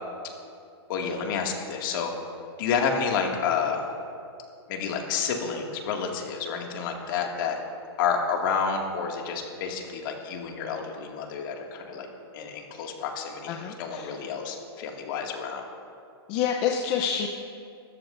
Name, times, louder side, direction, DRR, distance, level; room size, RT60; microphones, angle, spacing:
voice 1, 0.9-2.1 2.6-3.8 4.7-7.6 8.0-12.1 12.3-15.6, left 6 dB, 50° left, 1 dB, 2.2 m, -29 dB
voice 2, 13.5-14.1 16.3-17.3, left 8 dB, 35° left, 2 dB, 0.8 m, -27 dB
23.0 x 13.5 x 2.6 m, 2.5 s
hypercardioid pair, 150°, 14 cm